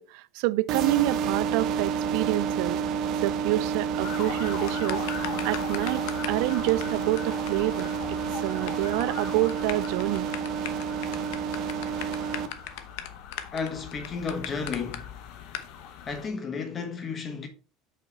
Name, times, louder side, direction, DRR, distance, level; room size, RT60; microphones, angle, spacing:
voice 1, 0.0-2.8 3.2-10.3, right 19 dB, 65° right, 0.3 m, -28 dB
sound 1, 0.7-12.5, right 7 dB, 45° right, 0.8 m, -30 dB
sound 2, 4.0-16.3, left 8 dB, 55° left, 1.2 m, -41 dB
sound 3, 4.7-6.4 6.7-6.8 7.2-7.3 7.5-7.6 7.8-7.9 8.1-8.7 9.0-9.2 9.5-15.0 15.5-15.7, left 12 dB, 75° left, 0.9 m, -37 dB
voice 2, 13.5-15.2 16.1-17.5, left 5 dB, 25° left, 1.3 m, -33 dB
7.0 x 5.7 x 4.1 m
cardioid pair, 170°, 0 cm